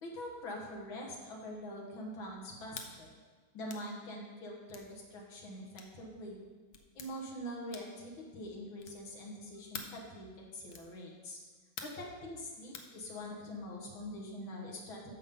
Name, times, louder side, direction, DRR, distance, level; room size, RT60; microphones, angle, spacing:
voice 1, 0.0-3.1 3.5-6.4 6.9-11.4 11.8-15.1, left 1 dB, 85° left, -2 dB, 2.3 m, -44 dB
sound 1, 2.7-2.9 3.7-3.9 4.7-4.9 5.7-6.0 6.7-7.1 7.7-8.0 8.8-9.1 9.7-10.0 10.7-10.9 11.8-12.1 12.7-12.9, left 6 dB, 60° left, 1.2 m, -46 dB
13.5 x 5.3 x 3.7 m, 1.5 s
omnidirectional pair, 2.1 m